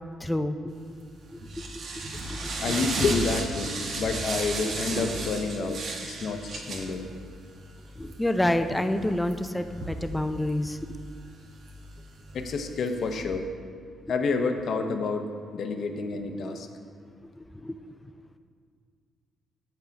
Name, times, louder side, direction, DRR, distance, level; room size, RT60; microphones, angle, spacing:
voice 1, 0.2-0.6 0.9-1.0 1.3-1.7 2.3-2.8 8.0-11.0 16.5-16.6 17.1-18.0, left 1 dB, 10° left, 9 dB, 0.4 m, -29 dB
sound 1, 0.8-13.2, right 2 dB, 65° right, 1.1 m, -36 dB
voice 2, 2.6-7.1 12.3-13.5 14.1-16.7, left 4 dB, 65° left, 6 dB, 0.7 m, -29 dB
7.8 x 5.8 x 5.1 m, 2.1 s
cardioid pair, 90°, 0 cm